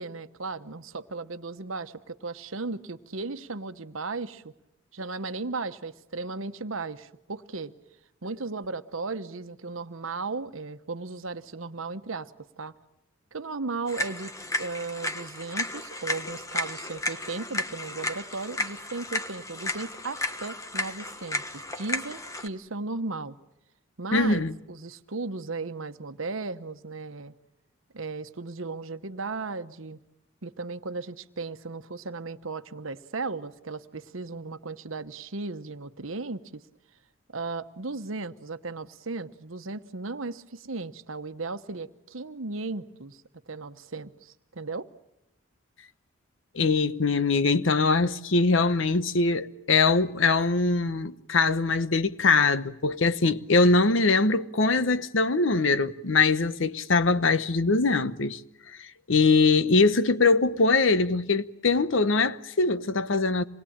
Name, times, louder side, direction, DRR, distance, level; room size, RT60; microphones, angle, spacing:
voice 1, 0.0-4.5 4.9-7.7 8.2-12.7 13.3-14.3 14.6-23.3 24.0-27.3 27.9-30.0 30.4-36.6 37.3-44.9, right 3 dB, 75° right, 1.1 m, -36 dB
sound 1, 13.9-22.5, left 2 dB, 15° left, 1.2 m, -33 dB
voice 2, 24.1-24.5 46.5-58.4 59.1-63.4, left 3 dB, 70° left, 0.9 m, -22 dB
26.5 x 20.5 x 8.7 m
head